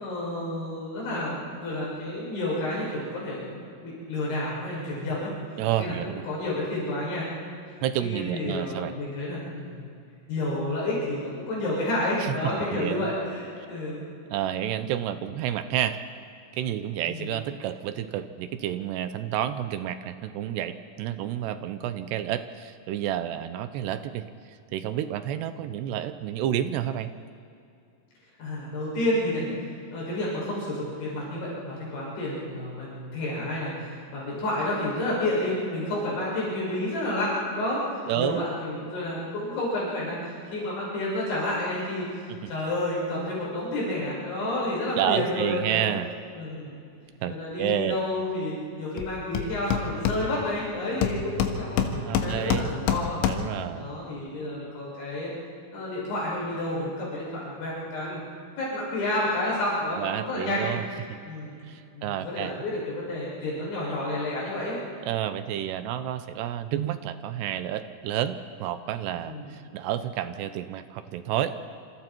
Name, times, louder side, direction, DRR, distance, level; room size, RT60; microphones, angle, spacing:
voice 1, 0.0-1.3 1.6-3.4 3.8-5.3 5.8-7.3 8.0-9.8 10.3-14.1 17.0-17.3 25.5-25.6 28.4-29.5 29.9-37.8 38.1-45.9 46.3-46.8 47.3-53.2 53.8-55.3 55.7-58.2 58.6-60.7 61.3-61.5 61.9-64.8 69.3-69.5, left 1 dB, 70° left, -6 dB, 9.1 m, -30 dB
voice 2, 5.6-6.2 7.8-8.9 12.2-12.3 12.7-13.1 13.6-13.7 14.3-16.0 16.5-24.3 24.7-27.1 38.1-38.5 42.4-42.5 45.0-46.1 47.2-48.0 51.8-52.8 53.2-53.9 60.0-61.2 61.7-62.5 65.0-71.7, right 11 dB, 75° right, 11 dB, 2.6 m, -30 dB
Hammer, 49.0-49.1 49.4-50.6 51.0-53.6, left 8 dB, 90° left, 3.8 m, -27 dB
28.0 x 27.5 x 4.5 m, 2.5 s
omnidirectional pair, 5.5 m